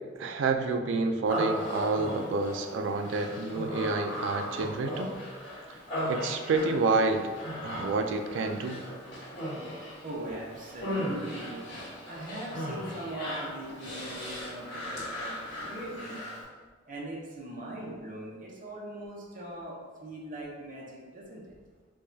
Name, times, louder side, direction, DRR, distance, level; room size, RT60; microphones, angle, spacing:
voice 1, 0.2-5.1 5.7-5.8 6.0-7.3 7.6-8.8, right 3 dB, 70° right, 6 dB, 0.3 m, -29 dB
Human voice, 1.3-16.4, equal, 65° left, 1.5 m, -37 dB
voice 2, 10.0-11.6 12.1-16.2 16.9-21.4, right 1 dB, 45° right, -4 dB, 0.7 m, -40 dB
4.6 x 2.3 x 2.6 m, 1.4 s
head